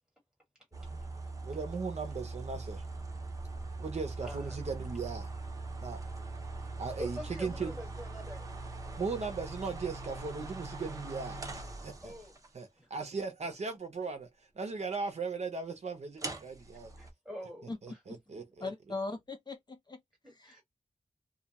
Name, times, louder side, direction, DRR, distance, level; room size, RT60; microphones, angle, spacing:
voice 1, 0.7-1.1 4.2-4.6 7.0-8.5 12.0-12.4 12.8-13.1 17.0-18.0 20.2-20.6, equal, 5° right, 1.6 m, -45 dB
sound 1, 0.7-12.5 16.2-17.1, right 2 dB, 25° right, 0.6 m, -41 dB
voice 2, 1.4-2.8 3.8-5.3 5.8-6.0 6.8-7.7 9.0-12.1 12.5-14.3 14.6-16.9 17.8-18.7, right 4 dB, 60° right, 0.7 m, -38 dB
voice 3, 18.6-20.0 20.3-20.6, left 3 dB, 35° left, 0.6 m, -39 dB
2.4 x 2.3 x 2.9 m
wide cardioid pair, 130°, 13 cm